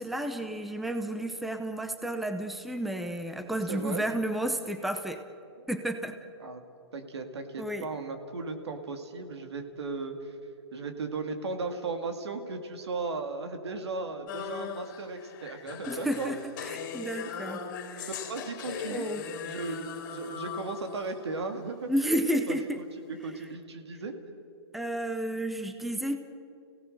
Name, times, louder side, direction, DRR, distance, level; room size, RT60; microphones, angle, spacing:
voice 1, 0.0-5.2 5.7-6.1 7.6-7.8 15.9-16.4 16.6-17.6 17.9-18.1 18.9-19.2 21.9-22.8 24.7-26.2, right 1 dB, ahead, 7 dB, 0.8 m, -31 dB
voice 2, 3.7-4.1 6.4-6.6 6.9-10.4 10.7-16.3 17.0-17.2 18.3-19.1 19.4-21.9 22.3-22.8 23.2-24.1, right 3 dB, 85° right, 6 dB, 2.4 m, -36 dB
sound 1, 14.3-21.5, left 6 dB, 45° left, 2.7 m, -39 dB
29.5 x 17.0 x 6.7 m, 2.5 s
hypercardioid pair, 150°, 14 cm